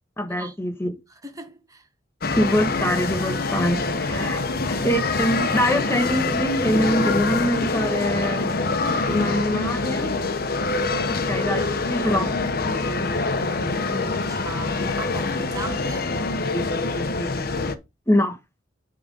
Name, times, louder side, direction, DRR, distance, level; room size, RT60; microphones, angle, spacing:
voice 1, 0.2-0.9 2.4-4.4 4.7-8.5 9.0-10.1 11.3-12.3 18.1-18.4, equal, 15° left, 1.4 m, -24 dB
voice 2, 1.2-1.9 4.1-4.4 13.3-16.3, right 2 dB, 20° right, 1.5 m, -38 dB
sound 1, 2.2-17.7, left 3 dB, 55° left, 1.0 m, -25 dB
9.1 x 3.8 x 5.4 m
head